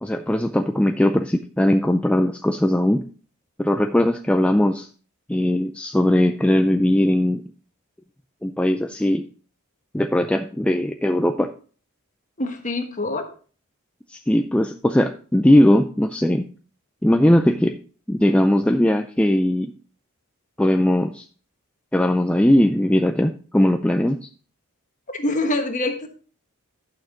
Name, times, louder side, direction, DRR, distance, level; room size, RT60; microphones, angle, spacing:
voice 1, 0.0-3.0 3.6-4.9 5.3-7.4 8.4-9.3 9.9-11.5 14.1-16.4 17.0-17.8 18.1-19.7 20.6-21.2 21.9-24.3, left 1 dB, 5° left, 5 dB, 0.3 m, -19 dB
voice 2, 12.4-13.3 25.1-26.1, left 2 dB, 35° left, 5 dB, 1.3 m, -25 dB
11.5 x 6.5 x 3.7 m, 0.40 s
head